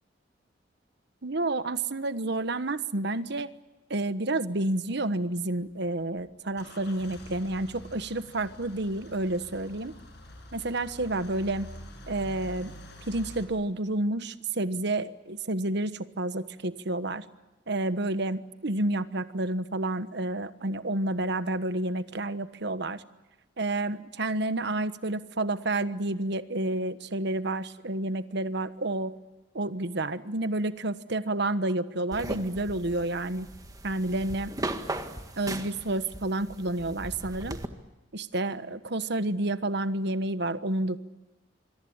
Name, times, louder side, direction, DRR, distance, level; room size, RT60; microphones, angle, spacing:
voice 1, 1.2-3.5 3.9-10.0 10.5-11.7 12.1-12.7 13.1-17.2 17.7-23.0 23.6-29.1 29.5-33.5 33.8-34.5 35.4-37.6 38.1-41.0, right 2 dB, 65° right, 12 dB, 1.3 m, -30 dB
Car / Engine starting / Idling, 5.7-13.4, left 1 dB, 60° left, 7.8 m, -46 dB
sound 1, 32.1-37.7, right 1 dB, 20° right, 1.9 m, -38 dB
26.5 x 23.0 x 8.8 m, 1.1 s
head